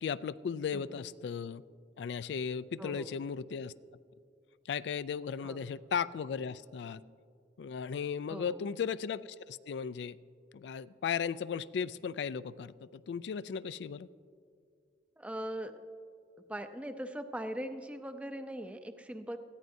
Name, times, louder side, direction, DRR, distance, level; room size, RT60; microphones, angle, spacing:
voice 1, 0.0-1.6 2.0-3.7 4.7-7.0 7.6-10.2 10.5-14.1, left 6 dB, 70° left, 17 dB, 0.3 m, -36 dB
voice 2, 2.8-3.2 5.4-5.6 8.3-8.6 15.2-15.7 16.5-19.4, right 1 dB, 5° right, 8 dB, 0.5 m, -40 dB
20.0 x 14.5 x 2.7 m, 2.3 s
head